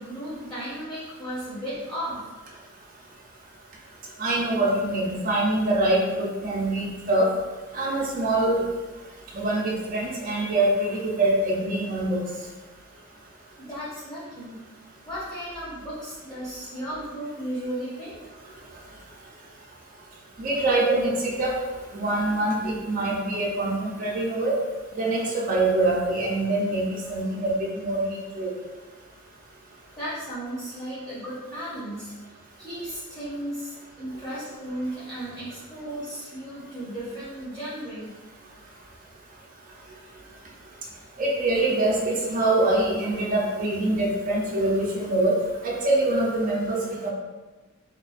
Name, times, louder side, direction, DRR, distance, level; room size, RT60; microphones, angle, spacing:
voice 1, 0.0-2.2 13.6-14.6 15.1-18.1 29.9-32.1 32.6-38.1, equal, 20° left, -13 dB, 0.8 m, -35 dB
voice 2, 4.2-7.3 7.7-8.6 9.3-12.2 20.4-21.6 21.9-24.5 24.9-28.5 41.2-45.3 45.6-47.1, right 2 dB, 40° right, -3 dB, 0.4 m, -24 dB
2.4 x 2.1 x 2.4 m, 1.2 s
head